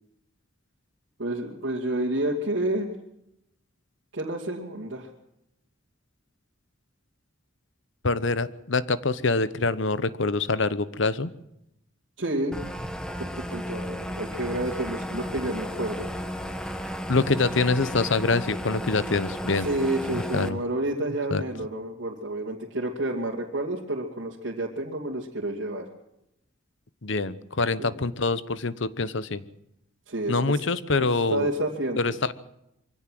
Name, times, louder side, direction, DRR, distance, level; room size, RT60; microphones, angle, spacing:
voice 1, 1.2-2.9 4.1-5.1 12.2-12.6 13.2-16.1 19.6-25.9 27.8-27.9 30.1-30.6 31.0-32.0, right 1 dB, 65° right, -3 dB, 2.6 m, -30 dB
voice 2, 8.0-11.3 17.1-19.7 20.1-20.6 21.3-21.4 27.0-29.4 30.3-31.5 32.0-32.3, left 3 dB, 65° left, 15 dB, 1.0 m, -25 dB
sound 1, 12.5-20.5, equal, 5° left, 1.2 m, -34 dB
24.0 x 16.0 x 7.7 m, 0.83 s
head